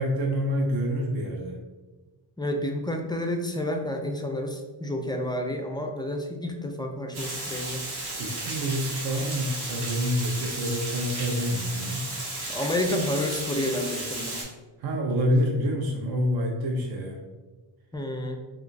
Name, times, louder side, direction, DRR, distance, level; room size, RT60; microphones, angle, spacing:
voice 1, 0.0-1.6 8.2-12.1 14.8-17.2, equal, 55° right, 1 dB, 0.5 m, -27 dB
voice 2, 2.4-7.8 12.5-14.4 17.9-18.4, left 1 dB, 10° left, 3 dB, 0.3 m, -30 dB
Water, 7.1-14.4, right 2 dB, 80° right, 1.2 m, -34 dB
3.1 x 2.3 x 3.8 m, 1.2 s
cardioid pair, 90°, 47 cm